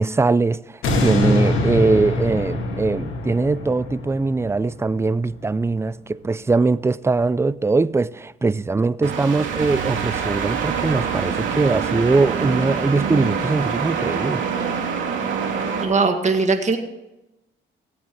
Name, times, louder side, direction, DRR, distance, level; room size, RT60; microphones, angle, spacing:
voice 1, 0.0-14.4, right 3 dB, 15° right, 0.4 m, -21 dB
sound 1, 0.8-5.9 6.4-6.5, left 2 dB, 85° left, 2.3 m, -24 dB
sound 2, 9.0-15.8, right 6 dB, 75° right, 2.9 m, -25 dB
voice 2, 15.8-16.8, right 4 dB, 35° right, 1.8 m, -19 dB
16.5 x 8.6 x 4.7 m
cardioid pair, 90°, 20 cm